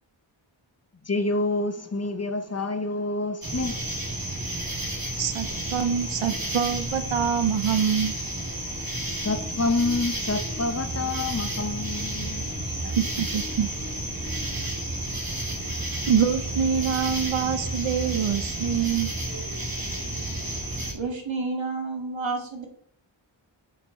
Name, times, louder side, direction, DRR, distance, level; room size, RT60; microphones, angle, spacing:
voice 1, 1.1-3.8 9.2-12.9, left 2 dB, 30° left, 0.7 m, -28 dB
sound 1, 3.4-20.9, right 1 dB, 45° right, 3.0 m, -31 dB
voice 2, 5.2-8.2 13.0-13.7 16.1-19.1, right 7 dB, 85° right, 0.7 m, -25 dB
voice 3, 20.9-22.7, right 3 dB, 65° right, 1.8 m, -30 dB
8.0 x 5.9 x 4.2 m
wide cardioid pair, 85°, 49 cm